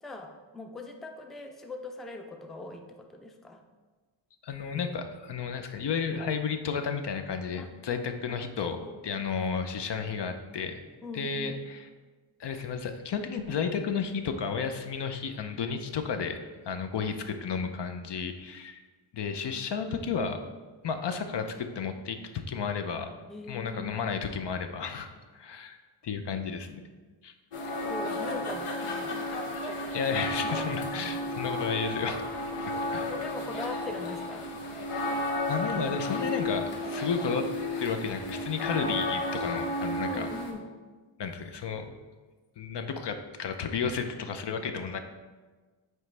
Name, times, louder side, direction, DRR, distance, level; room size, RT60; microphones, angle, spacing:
voice 1, 0.0-3.6 7.6-7.7 8.3-8.4 8.7-8.9 11.0-11.6 23.3-24.1 27.8-29.3 30.4-30.7 33.0-34.5 40.0-40.7, left 2 dB, ahead, 4 dB, 0.4 m, -41 dB
voice 2, 4.4-8.8 9.0-10.8 11.1-11.9 12.4-16.4 16.6-18.8 19.1-20.4 20.8-23.1 23.5-25.1 25.3-25.8 26.0-26.8 27.2-27.3 29.9-32.2 32.7-33.1 35.5-37.5 37.8-40.3 41.2-41.9 42.6-45.0, left 6 dB, 55° left, 7 dB, 0.6 m, -32 dB
sound 1, 27.5-40.5, left 1 dB, 85° left, 0.9 m, -33 dB
8.9 x 3.2 x 3.3 m, 1.3 s
cardioid pair, 75°, 49 cm